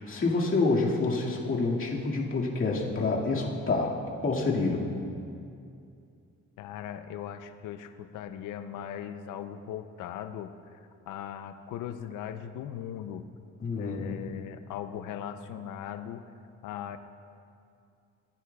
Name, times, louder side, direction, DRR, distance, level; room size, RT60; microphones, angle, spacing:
voice 1, 0.0-4.9 13.6-14.2, left 3 dB, 45° left, -4 dB, 2.1 m, -28 dB
voice 2, 6.6-10.8 11.1-13.3 13.8-16.2 16.6-17.0, left 9 dB, 90° left, 9 dB, 0.6 m, -39 dB
19.5 x 9.8 x 2.3 m, 2.5 s
cardioid pair, 90°, 30 cm